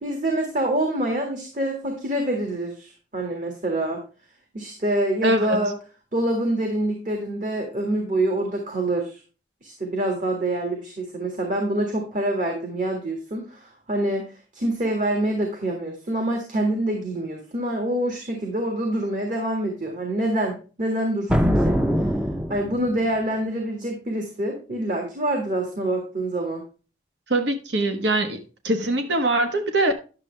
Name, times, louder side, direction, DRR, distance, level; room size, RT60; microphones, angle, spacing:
voice 1, 0.0-4.0 4.5-5.7 6.1-9.2 9.6-22.1 22.5-26.6, right 1 dB, 45° right, 1.8 m, -26 dB
voice 2, 5.2-5.7 27.3-29.9, right 2 dB, 75° right, 1.3 m, -23 dB
sound 1, 21.3-23.0, equal, 5° right, 0.5 m, -22 dB
10.5 x 7.0 x 3.3 m
head